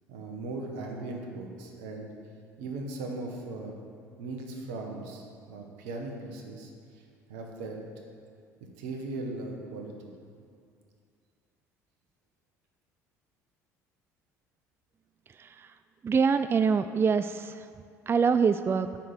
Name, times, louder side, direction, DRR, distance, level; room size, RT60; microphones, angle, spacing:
voice 1, 0.1-2.1 2.6-3.7 4.2-7.0 7.3-8.1 8.8-10.1, right 2 dB, 75° right, 2 dB, 1.5 m, -38 dB
voice 2, 16.0-17.7 18.1-18.9, right 5 dB, 25° right, 11 dB, 0.4 m, -25 dB
9.1 x 5.9 x 8.2 m, 2.3 s
hypercardioid pair, 60°, 9 cm